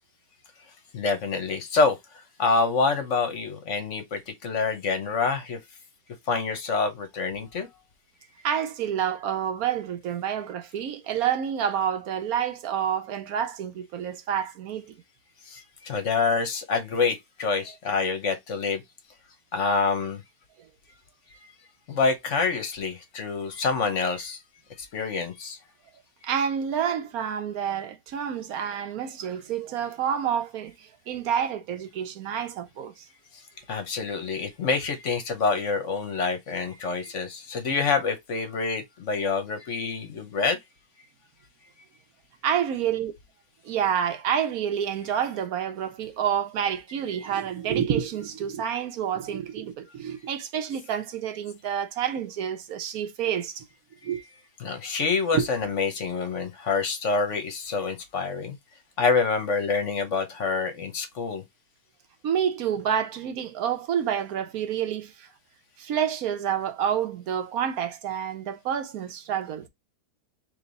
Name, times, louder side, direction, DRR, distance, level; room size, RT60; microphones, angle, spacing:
voice 1, 0.9-5.6 6.3-7.7 15.4-18.8 19.5-20.2 21.9-24.4 24.7-25.6 33.3-33.4 33.7-40.6 47.2-47.3 54.1-54.2 54.6-58.6 59.0-61.4, left 4 dB, 50° left, 1.1 m, -27 dB
voice 2, 8.4-14.9 20.6-20.7 26.2-33.0 42.4-43.1 43.6-53.7 54.0-54.2 55.3-55.5 62.2-65.3 65.8-69.7, right 8 dB, 65° right, 1.2 m, -28 dB
3.3 x 3.3 x 3.8 m
omnidirectional pair, 1.8 m